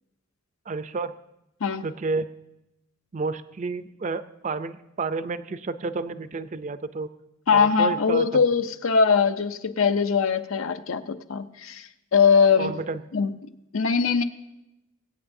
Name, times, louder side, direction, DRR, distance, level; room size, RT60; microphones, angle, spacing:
voice 1, 0.7-1.1 1.8-2.3 3.1-7.1 7.5-8.5 12.6-13.0, right 3 dB, 35° right, 12 dB, 0.4 m, -30 dB
voice 2, 7.5-12.7 13.1-13.3 13.7-14.2, left 5 dB, 75° left, 10 dB, 0.6 m, -21 dB
21.5 x 8.8 x 2.7 m, 0.89 s
head